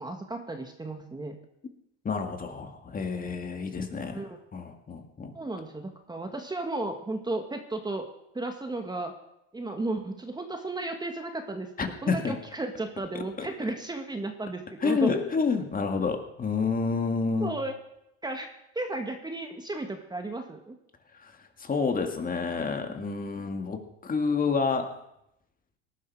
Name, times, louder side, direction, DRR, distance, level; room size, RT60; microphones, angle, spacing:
voice 1, 0.0-1.4 4.0-4.4 5.3-9.1 9.5-11.7 12.0-15.1 17.4-17.8 18.2-20.7, right 2 dB, 10° right, 5 dB, 1.6 m, -34 dB
voice 2, 2.0-4.2 4.5-5.4 11.8-12.3 13.1-13.5 14.8-17.5 21.2-21.3 21.6-24.9, left 4 dB, 25° left, 5 dB, 2.1 m, -29 dB
18.0 x 11.5 x 4.7 m, 0.82 s
supercardioid pair, 100°, 35 cm